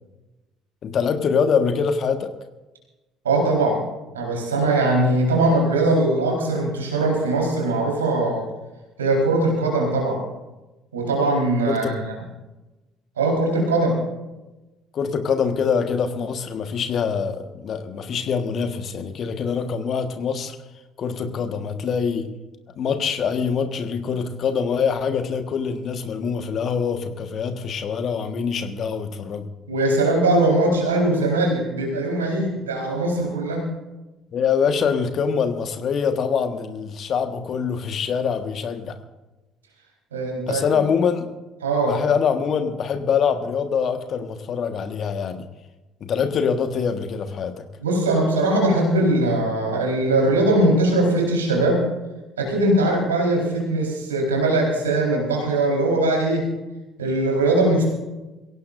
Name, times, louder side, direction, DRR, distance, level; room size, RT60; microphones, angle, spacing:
voice 1, 0.8-2.3 11.7-12.0 14.9-20.6 21.0-22.3 22.7-29.5 34.3-39.0 40.5-41.3 41.8-45.4 46.0-47.7, left 6 dB, 50° left, 7 dB, 1.4 m, -24 dB
voice 2, 3.2-3.8 4.1-8.4 9.0-10.2 10.9-12.0 13.2-14.0 29.7-33.7 40.1-40.6 41.6-42.0 47.8-51.9 52.4-56.5 57.0-57.9, right 2 dB, 80° right, -1 dB, 4.2 m, -21 dB
23.0 x 17.0 x 2.6 m, 1.1 s
figure-of-eight pair, 50°, 0 cm